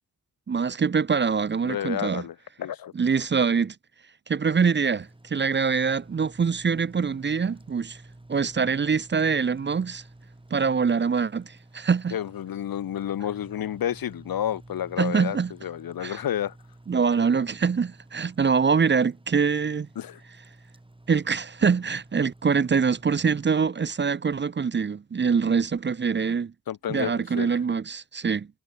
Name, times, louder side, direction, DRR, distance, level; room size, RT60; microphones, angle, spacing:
voice 1, 0.5-2.2 2.9-3.7 4.3-8.0 8.3-10.0 10.5-12.2 15.0-15.5 16.0-16.2 16.9-19.9 21.1-26.5 26.9-28.5, right 5 dB, 30° right, 0.5 m, -24 dB
voice 2, 1.6-2.9 12.1-16.5 20.0-20.2 26.7-27.5, left 10 dB, 80° left, 0.7 m, -30 dB
sound 1, 4.4-23.5, right 1 dB, 15° right, 7.0 m, -51 dB
wide cardioid pair, 125°, 35 cm